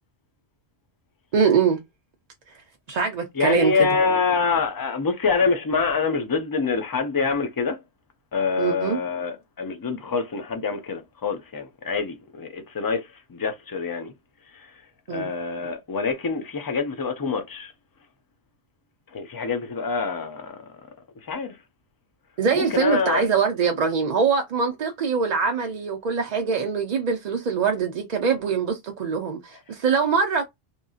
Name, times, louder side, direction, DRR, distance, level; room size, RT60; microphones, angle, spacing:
voice 1, 1.3-1.8 2.9-3.9 8.6-9.0 15.1-15.3 22.4-30.4, right 5 dB, 50° right, 0.5 m, -23 dB
voice 2, 3.4-7.8 8.3-14.1 15.1-17.7 19.1-20.6 21.3-21.5 22.5-23.3, left 4 dB, 30° left, 0.4 m, -25 dB
2.9 x 2.6 x 2.4 m
omnidirectional pair, 1.1 m